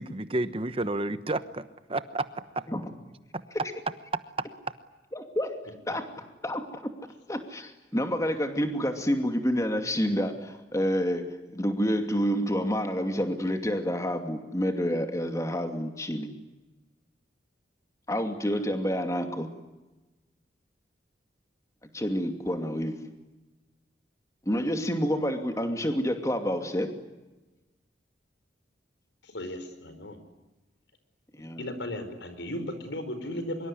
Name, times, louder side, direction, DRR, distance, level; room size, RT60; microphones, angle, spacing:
voice 1, 0.0-2.6 3.3-3.4 4.1-4.5, right 2 dB, 30° right, 12 dB, 1.1 m, -31 dB
voice 2, 5.1-6.1 6.4-7.0 7.3-16.3 18.1-19.5 21.9-23.0 24.5-26.9 31.3-31.6, equal, 15° left, 5 dB, 2.6 m, -28 dB
voice 3, 29.2-30.2 31.6-33.7, left 1 dB, 80° left, 9 dB, 5.0 m, -36 dB
24.5 x 23.5 x 9.9 m, 1.1 s
head